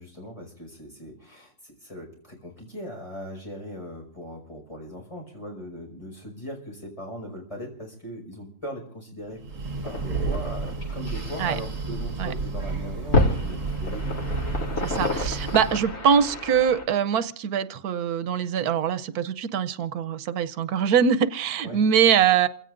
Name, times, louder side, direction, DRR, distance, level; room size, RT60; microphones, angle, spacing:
voice 1, 0.0-9.4 9.8-14.2 21.6-21.8, equal, 20° left, 0 dB, 5.4 m, -39 dB
Breathing, 9.3-16.0, right 3 dB, 60° right, 2.1 m, -31 dB
sound 1, 9.5-16.8, left 2 dB, 60° left, 2.4 m, -30 dB
voice 2, 14.8-22.5, right 8 dB, 90° right, 13 dB, 1.3 m, -23 dB
28.0 x 16.0 x 2.6 m, 0.64 s
omnidirectional pair, 1.5 m